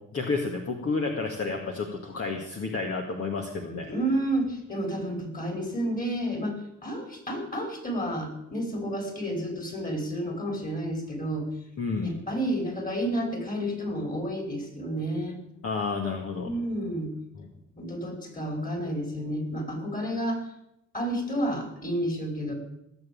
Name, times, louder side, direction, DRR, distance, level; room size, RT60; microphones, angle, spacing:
voice 1, 0.1-3.9 11.8-12.2 15.6-16.5 17.4-17.5, left 4 dB, 50° left, 2 dB, 2.1 m, -30 dB
voice 2, 3.9-11.5 12.0-15.4 16.4-17.1 17.8-20.4 20.9-22.5, right 1 dB, 30° left, 2 dB, 5.4 m, -30 dB
17.5 x 7.6 x 8.8 m, 0.82 s
cardioid pair, 90°, 30 cm